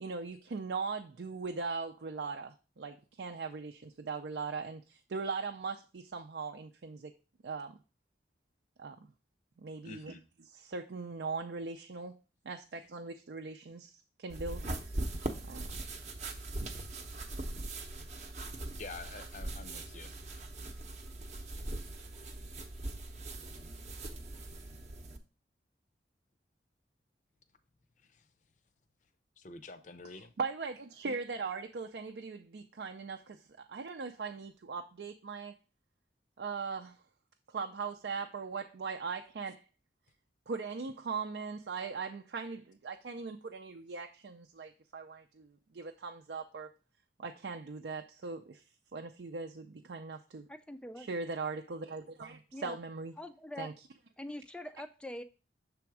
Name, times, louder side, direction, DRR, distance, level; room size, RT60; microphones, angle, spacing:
voice 1, 0.0-7.1 7.4-7.8 8.8-9.1 9.6-10.1 10.5-12.1 12.4-14.6 15.4-15.6 30.4-35.5 36.4-37.0 37.5-39.6 40.5-46.7 47.2-48.6 48.9-50.5 51.0-53.1 53.6-53.7, right 4 dB, 75° right, 0.5 m, -40 dB
voice 2, 9.8-10.2 18.8-20.1 28.1-28.2 29.4-30.3, left 3 dB, 45° left, 0.6 m, -47 dB
sound 1, 14.3-25.2, right 2 dB, 40° right, 0.7 m, -41 dB
voice 3, 50.5-51.1 52.5-52.8 53.2-53.7 54.2-55.2, left 1 dB, 5° left, 0.3 m, -43 dB
7.0 x 3.5 x 4.7 m
head